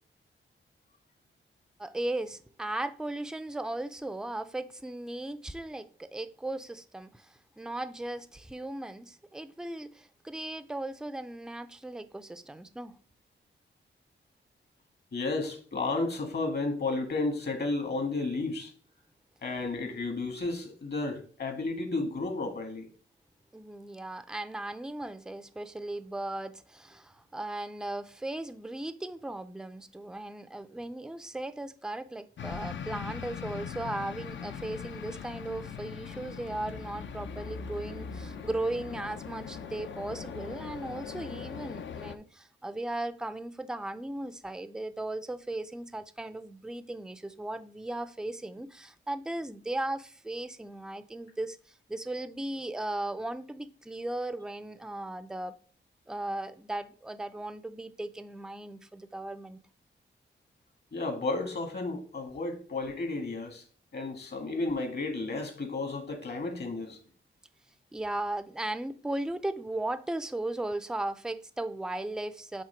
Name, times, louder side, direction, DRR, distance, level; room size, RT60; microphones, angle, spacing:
voice 1, 1.8-12.9 23.5-55.6 56.1-59.6 67.9-72.6, right 1 dB, 5° right, 0.4 m, -37 dB
voice 2, 15.1-18.7 19.4-22.9 60.9-63.6 63.9-67.0, left 3 dB, 55° left, 1.7 m, -32 dB
sound 1, 32.4-42.2, left 6 dB, 70° left, 0.6 m, -40 dB
7.6 x 3.3 x 4.5 m
cardioid pair, 95°, 20 cm